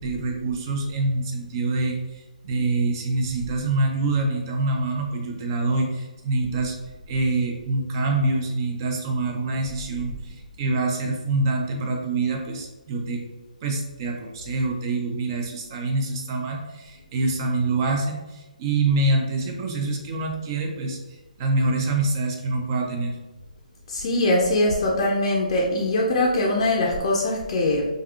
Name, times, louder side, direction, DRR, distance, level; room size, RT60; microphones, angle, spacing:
voice 1, 0.0-6.7 7.1-13.2 13.6-23.2, right 2 dB, 30° right, 2 dB, 0.5 m, -25 dB
voice 2, 23.9-27.8, left 1 dB, 40° left, -2 dB, 0.4 m, -22 dB
3.4 x 2.5 x 2.4 m, 1.1 s
figure-of-eight pair, 140°, 4 cm